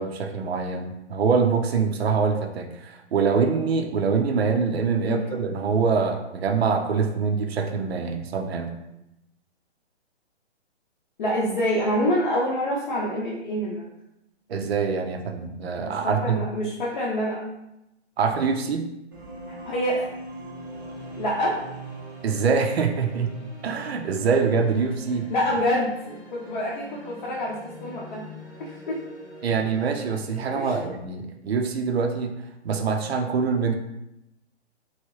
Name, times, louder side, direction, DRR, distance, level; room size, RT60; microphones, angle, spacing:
voice 1, 0.0-8.7 14.5-16.4 18.2-18.9 22.2-23.3 23.6-25.3 29.4-32.4 32.6-33.7, right 5 dB, 60° right, 5 dB, 0.6 m, -24 dB
voice 2, 11.2-13.8 15.9-17.4 19.6-20.1 21.2-21.6 25.3-28.2 28.6-29.0 30.5-30.9, equal, 40° left, -5 dB, 0.7 m, -26 dB
sound 1, 19.1-26.1, right 2 dB, 20° right, 0.3 m, -42 dB
sound 2, 20.4-30.6, equal, 5° left, 1.0 m, -45 dB
3.1 x 2.7 x 3.0 m, 0.87 s
hypercardioid pair, 150°, 34 cm